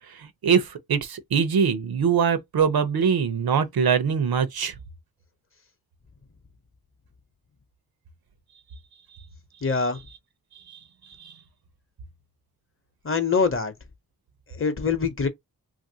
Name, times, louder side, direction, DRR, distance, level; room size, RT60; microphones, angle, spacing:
voice 1, 0.1-4.7 10.7-10.8 11.2-11.4, right 6 dB, 85° right, 0.6 m, -23 dB
voice 2, 9.6-10.0 13.0-13.7 14.5-15.3, left 5 dB, 35° left, 0.7 m, -24 dB
2.9 x 2.5 x 2.6 m
wide cardioid pair, 85°, 36 cm